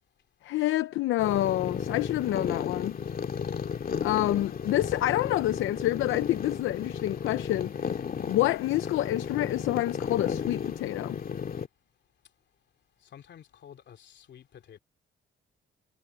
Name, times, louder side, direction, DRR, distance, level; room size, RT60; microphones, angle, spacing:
voice 1, 0.4-2.9 4.0-7.9 8.3-11.2, left 15 dB, 85° left, 0.7 m, -28 dB
sound 1, 1.2-11.7, left 7 dB, 50° left, 2.2 m, -34 dB
voice 2, 13.1-14.8, left 9 dB, 65° left, 2.9 m, -50 dB
cardioid pair, 90°, 20 cm